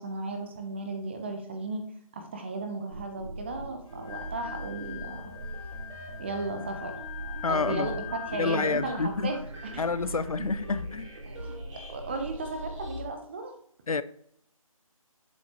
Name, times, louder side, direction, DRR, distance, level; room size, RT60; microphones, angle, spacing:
voice 1, 0.0-1.9 2.1-5.3 6.2-7.0 7.5-9.4 9.7-10.5 11.2-13.5, right 3 dB, 20° right, 0.7 m, -35 dB
sound 1, 2.9-13.0, right 1 dB, 55° right, 2.5 m, -41 dB
Wind instrument woodwind instrument, 3.9-9.2, left 12 dB, 5° left, 2.3 m, -43 dB
voice 2, 7.4-8.0 8.3-9.3 9.8-11.1 13.9-14.0, left 4 dB, 75° left, 0.5 m, -29 dB
7.2 x 5.9 x 3.0 m
figure-of-eight pair, 155°, 19 cm